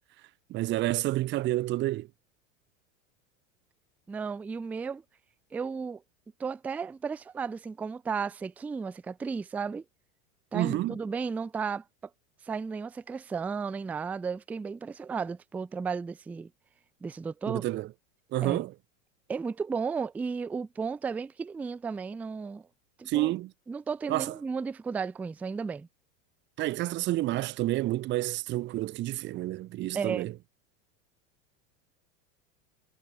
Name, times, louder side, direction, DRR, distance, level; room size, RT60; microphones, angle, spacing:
voice 1, 0.5-2.1 10.5-11.0 17.5-17.9 18.3-18.7 23.1-23.5 24.1-24.4 26.6-30.3, right 16 dB, 30° right, 0.9 m, -29 dB
voice 2, 4.1-5.0 5.5-6.0 6.4-9.8 10.5-11.8 12.4-16.5 17.0-17.6 18.4-18.6 19.3-22.6 23.0-23.3 23.7-25.9 29.9-30.3, right 5 dB, 5° right, 0.3 m, -34 dB
supercardioid pair, 155°, 38 cm